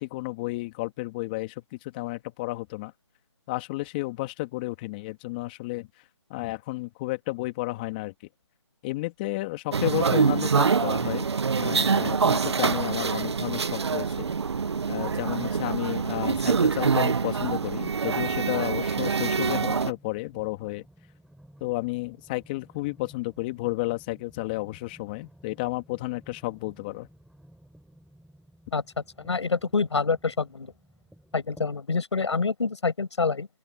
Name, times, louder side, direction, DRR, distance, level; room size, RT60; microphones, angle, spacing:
voice 1, 0.0-2.9 3.5-5.9 6.3-8.1 8.8-11.3 11.6-14.3 14.9-20.8 21.6-27.1, left 21 dB, 20° left, 2.4 m, -32 dB
sound 1, 9.7-19.9, right 5 dB, 65° right, 1.1 m, -25 dB
sound 2, 13.1-31.8, right 1 dB, ahead, 4.5 m, -55 dB
voice 2, 29.2-30.7 31.3-33.5, left 4 dB, 70° left, 5.8 m, -26 dB
open air
hypercardioid pair, 160°, 15 cm